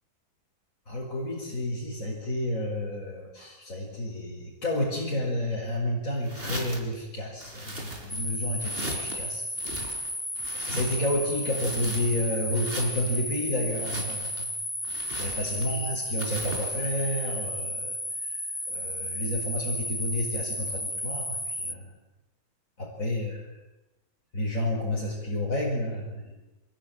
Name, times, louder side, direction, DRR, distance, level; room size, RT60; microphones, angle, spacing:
voice 1, 0.9-9.4 10.5-14.5 15.2-18.0 18.2-18.4 18.7-22.0 22.8-23.6 24.3-26.3, left 1 dB, 60° left, -3 dB, 5.7 m, -30 dB
sound 1, 6.2-6.9 7.4-8.3 8.6-9.2 9.6-11.1 11.4-12.2 12.5-13.2 13.7-14.5 14.8-15.8 16.2-16.8, right 1 dB, 35° right, 4.6 m, -38 dB
sound 2, 8.1-21.7, left 1 dB, 5° left, 1.3 m, -33 dB
26.5 x 21.5 x 9.2 m, 1.0 s
omnidirectional pair, 1.6 m